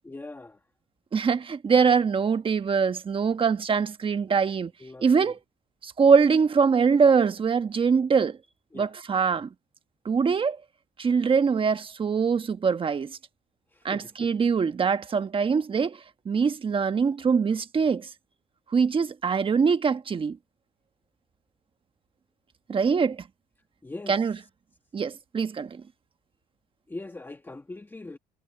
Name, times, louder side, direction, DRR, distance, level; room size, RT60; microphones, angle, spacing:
voice 1, 0.0-0.6 4.8-5.3 8.7-8.9 13.7-14.3 23.8-24.2 26.9-28.2, left 2 dB, 10° left, 1.3 m, -41 dB
voice 2, 1.1-4.7 5.0-5.4 5.8-8.4 8.7-9.5 10.0-10.6 11.0-13.2 13.8-18.1 18.7-20.4 22.7-23.2 24.1-24.4 24.9-25.8, right 5 dB, 30° right, 1.3 m, -23 dB
cardioid pair, 110°, 17 cm